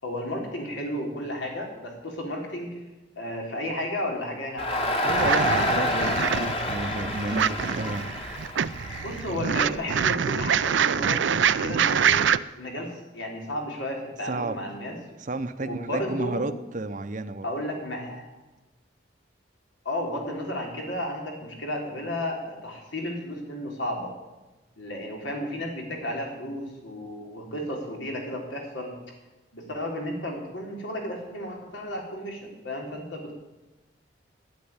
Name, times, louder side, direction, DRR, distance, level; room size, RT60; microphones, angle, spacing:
voice 1, 0.0-2.8 3.2-5.2 9.0-15.0 15.6-16.5 17.4-18.3 19.8-24.1 24.8-28.9 29.5-33.3, left 1 dB, 85° left, 0 dB, 3.8 m, -33 dB
Crowd, 4.6-9.8, left 1 dB, 30° left, 1.6 m, -28 dB
voice 2, 5.0-8.1 14.2-14.6 15.2-17.5, right 2 dB, 45° right, 9 dB, 0.7 m, -31 dB
sound 1, 5.1-12.4, right 8 dB, 80° right, 0.5 m, -25 dB
12.0 x 10.0 x 9.7 m, 1.1 s
head